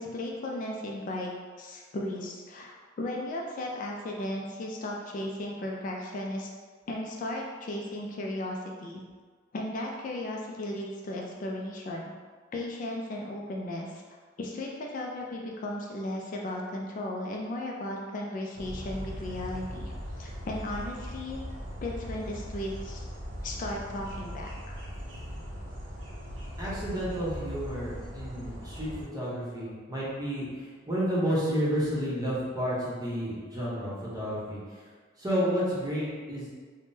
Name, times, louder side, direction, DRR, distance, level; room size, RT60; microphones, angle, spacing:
voice 1, 0.0-1.3 1.6-6.5 6.9-9.0 9.5-12.1 12.5-14.0 14.4-21.4 21.8-23.0 23.4-24.8, left 1 dB, 45° left, -1 dB, 0.3 m, -35 dB
sound 1, 18.6-29.0, equal, 85° right, 0.7 m, -39 dB
voice 2, 26.6-34.6 35.2-36.5, equal, 20° right, -8 dB, 0.8 m, -31 dB
3.4 x 2.1 x 2.6 m, 1.5 s
head